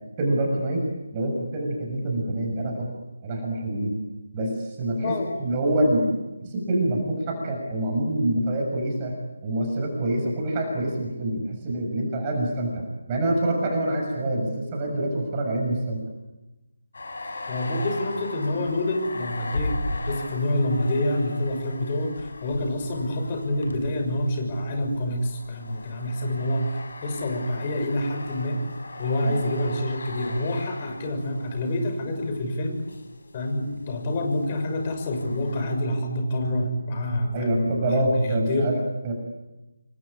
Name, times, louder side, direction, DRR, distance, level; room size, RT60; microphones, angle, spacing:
voice 1, 0.2-0.8 1.1-2.9 3.2-4.0 4.3-5.1 5.4-9.1 9.4-16.0 29.2-29.3 37.3-39.1, right 1 dB, 20° right, 1 dB, 6.5 m, -26 dB
voice 2, 5.0-5.5 17.5-28.6 29.0-32.8 33.3-38.7, left 1 dB, 25° left, 4 dB, 6.2 m, -27 dB
sound 1, 16.9-35.7, left 2 dB, 55° left, 6.3 m, -38 dB
28.0 x 24.0 x 8.8 m, 1.0 s
figure-of-eight pair, 155°, 0 cm